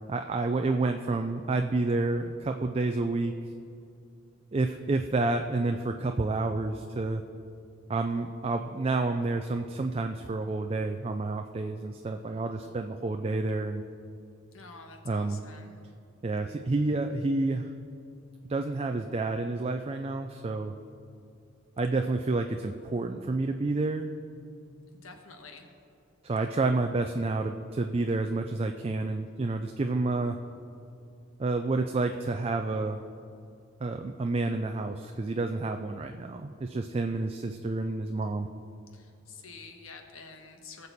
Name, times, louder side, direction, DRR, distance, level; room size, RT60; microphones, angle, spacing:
voice 1, 0.1-3.3 4.5-7.2 7.9-13.8 15.1-15.4 16.2-17.7 18.5-20.8 21.8-24.1 26.2-30.4 31.4-33.0 33.8-38.5, right 3 dB, 30° right, 5 dB, 0.4 m, -29 dB
voice 2, 14.5-15.7 25.0-25.7 38.9-40.9, left 4 dB, 85° left, 4 dB, 1.3 m, -48 dB
19.0 x 6.8 x 4.2 m, 2.5 s
head